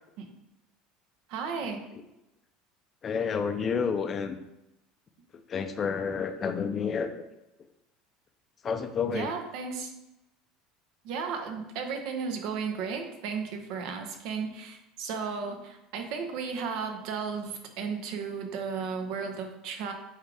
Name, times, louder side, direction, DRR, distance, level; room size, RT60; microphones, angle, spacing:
voice 1, 1.3-1.8 9.1-9.9 11.0-19.9, right 5 dB, 65° right, 5 dB, 1.0 m, -34 dB
voice 2, 3.0-4.4 5.5-7.2 8.6-9.3, left 6 dB, 30° left, 8 dB, 0.6 m, -30 dB
8.7 x 3.7 x 3.5 m, 0.91 s
cardioid pair, 145°, 0 cm